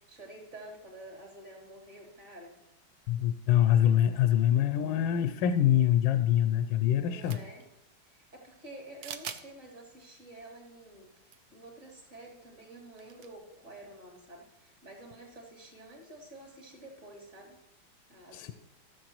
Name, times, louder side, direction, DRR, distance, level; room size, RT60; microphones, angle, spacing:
voice 1, 0.0-2.6 6.9-7.7 8.0-17.6 18.1-18.5, right 1 dB, 35° right, -2 dB, 3.4 m, -49 dB
voice 2, 3.1-7.4 18.3-18.5, left 11 dB, 80° left, 10 dB, 1.3 m, -25 dB
sound 1, 7.1-7.7 9.0-9.5 10.0-10.1 11.2-11.4 11.6-11.7 13.0-13.3, right 8 dB, 65° right, 1.1 m, -42 dB
15.5 x 7.8 x 3.0 m, 0.92 s
omnidirectional pair, 2.2 m